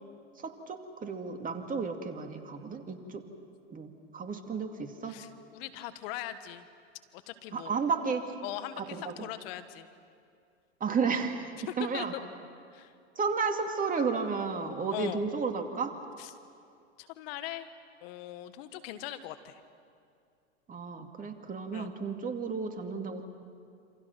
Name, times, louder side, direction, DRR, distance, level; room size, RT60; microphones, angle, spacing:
voice 1, 0.4-3.2 3.7-5.2 7.5-8.2 8.8-9.1 10.8-12.1 13.2-15.9 20.7-23.2, right 5 dB, 25° right, 4 dB, 2.6 m, -33 dB
voice 2, 5.1-6.6 7.1-7.8 8.4-9.9 11.6-12.3 12.7-12.9 14.9-15.2 16.2-16.3 17.0-17.7 18.0-19.6 21.7-21.9, left 13 dB, 60° left, 10 dB, 1.6 m, -40 dB
28.0 x 27.0 x 6.0 m, 2.4 s
hypercardioid pair, 100°, 35 cm